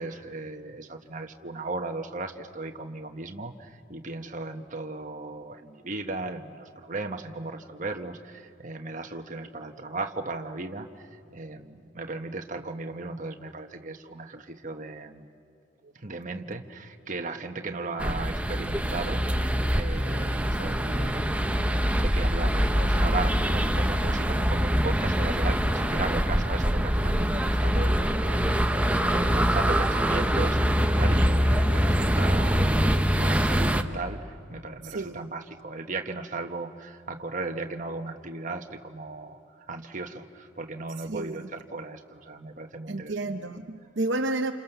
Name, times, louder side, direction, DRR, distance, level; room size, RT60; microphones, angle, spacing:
voice 1, 0.0-15.3 15.9-21.4 21.7-32.9 33.2-39.4 39.7-43.2, right 3 dB, 40° right, 5 dB, 1.3 m, -36 dB
sound 1, 18.0-33.8, equal, 5° right, 0.8 m, -24 dB
voice 2, 34.8-35.3 41.1-41.5 42.9-44.5, right 2 dB, 60° right, 4 dB, 0.9 m, -31 dB
28.5 x 28.5 x 6.9 m, 2.5 s
head